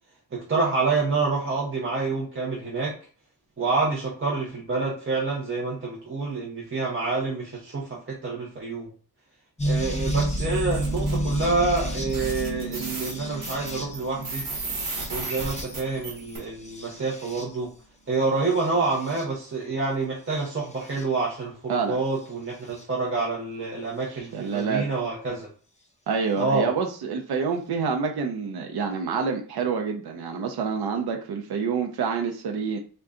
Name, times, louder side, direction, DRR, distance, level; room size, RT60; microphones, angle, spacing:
voice 1, 0.3-2.9 3.6-8.9 9.6-14.4 15.1-17.7 18.1-25.5 26.4-26.7, right 3 dB, 30° right, -3 dB, 0.8 m, -27 dB
sound 1, 9.6-17.7 18.5-19.2 20.4-21.0 22.8-22.9 24.6-24.7, equal, 20° left, 0.6 m, -31 dB
sound 2, 10.4-11.2 11.8-11.9 12.1-16.4, right 3 dB, 55° right, 1.4 m, -34 dB
voice 2, 24.1-24.9 26.1-32.8, right 5 dB, 75° right, 3 dB, 0.6 m, -27 dB
3.7 x 2.3 x 3.7 m, 0.39 s
wide cardioid pair, 180°, 39 cm